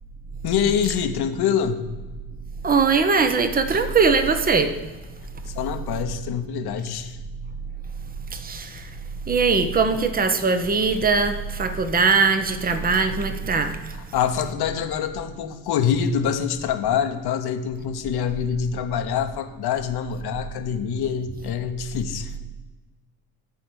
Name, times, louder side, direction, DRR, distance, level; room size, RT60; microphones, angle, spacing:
voice 1, 0.4-1.8 5.5-7.2 13.9-22.3, left 8 dB, 55° left, 7 dB, 1.1 m, -25 dB
voice 2, 2.6-4.7 8.3-8.9 9.3-13.8, right 4 dB, 20° right, 9 dB, 0.9 m, -21 dB
9.1 x 4.3 x 7.0 m, 1.2 s
hypercardioid pair, 65°, 47 cm